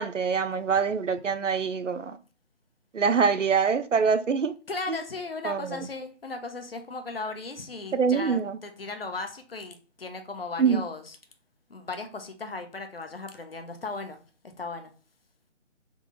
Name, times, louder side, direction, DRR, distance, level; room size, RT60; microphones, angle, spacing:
voice 1, 0.0-2.2 2.9-4.5 4.9-5.0 5.4-5.9 7.9-8.6 10.6-10.8, right 6 dB, 90° right, 0.6 m, -25 dB
voice 2, 4.7-11.0 11.7-14.2 14.4-14.9, left 3 dB, 55° left, 0.7 m, -36 dB
3.8 x 2.3 x 3.7 m
figure-of-eight pair, 155°, 36 cm